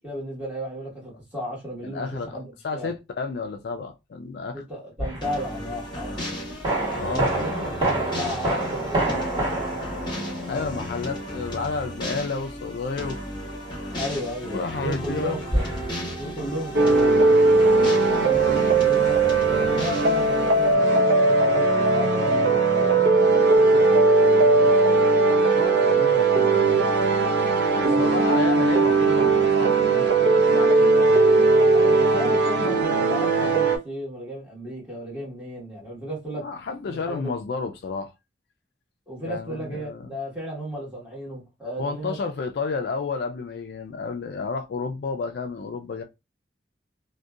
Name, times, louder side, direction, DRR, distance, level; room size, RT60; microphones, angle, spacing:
voice 1, 0.0-2.9 4.5-6.3 7.0-9.6 13.9-15.8 16.2-17.7 18.1-24.8 27.8-28.1 31.7-36.5 36.8-37.3 39.1-42.2, equal, 10° right, 1.2 m, -34 dB
voice 2, 1.8-4.6 6.9-7.7 10.5-13.2 13.9-14.0 14.5-15.4 25.5-26.8 27.7-31.5 36.4-38.1 39.2-40.1 41.8-46.0, left 4 dB, 60° left, 0.3 m, -31 dB
sound 1, 5.0-5.3 6.6-11.1 15.5-15.9, right 2 dB, 25° right, 1.5 m, -27 dB
sound 2, 5.2-20.7, equal, 25° left, 0.9 m, -34 dB
sound 3, 16.7-33.8, right 3 dB, 65° right, 0.6 m, -19 dB
2.6 x 2.1 x 2.3 m
head